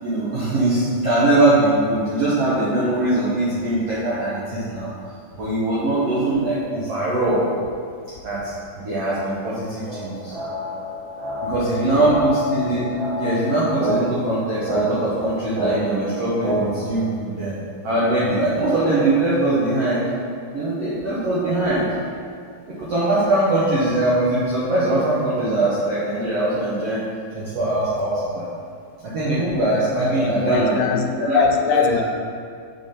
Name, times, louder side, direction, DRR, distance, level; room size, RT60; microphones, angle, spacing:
voice 1, 0.0-4.9 5.3-7.4 8.2-10.3 11.4-12.9 13.2-17.6 17.8-20.1 20.5-21.9 22.7-27.0 27.3-28.4 29.0-31.4 31.7-32.0, right 2 dB, 70° right, -9 dB, 1.5 m, -21 dB
sound 1, 9.9-16.9, equal, 90° right, 3.4 m, -28 dB
voice 2, 30.2-32.0, left 6 dB, 85° left, 5 dB, 2.3 m, -22 dB
7.2 x 5.2 x 4.2 m, 2.3 s
omnidirectional pair, 4.3 m